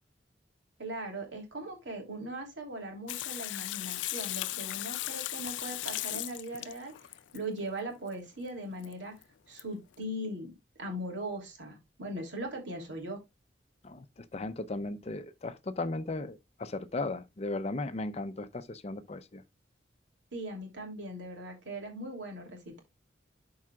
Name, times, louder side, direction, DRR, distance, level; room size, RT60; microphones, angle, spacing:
voice 1, 0.8-6.9 7.3-9.1 9.5-10.5 10.8-13.2 20.3-22.8, right 1 dB, 80° right, 2.9 m, -39 dB
Water tap faucet / Sink (filling or washing), 3.1-7.4 8.8-8.9 9.2-9.3 9.6-9.7, left 15 dB, 85° left, 0.4 m, -37 dB
voice 2, 13.8-19.4, left 2 dB, 35° left, 0.6 m, -36 dB
12.0 x 4.7 x 2.3 m
head